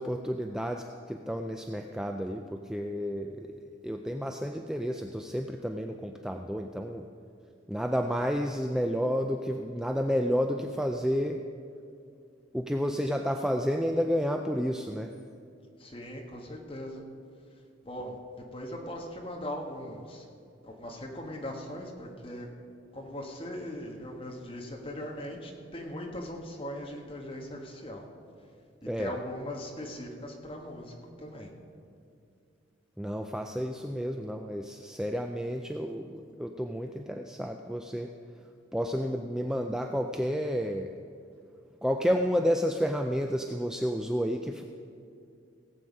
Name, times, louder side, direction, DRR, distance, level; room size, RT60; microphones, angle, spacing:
voice 1, 0.0-7.1 7.7-11.4 12.5-15.2 28.9-29.1 33.0-38.1 38.7-40.9 41.8-44.6, equal, 5° right, 4 dB, 0.3 m, -31 dB
voice 2, 15.8-17.0 17.8-18.2 18.5-20.3 20.6-22.5 22.9-28.1 29.0-31.5, left 1 dB, 25° left, 0 dB, 1.4 m, -39 dB
18.0 x 7.9 x 5.3 m, 2.4 s
head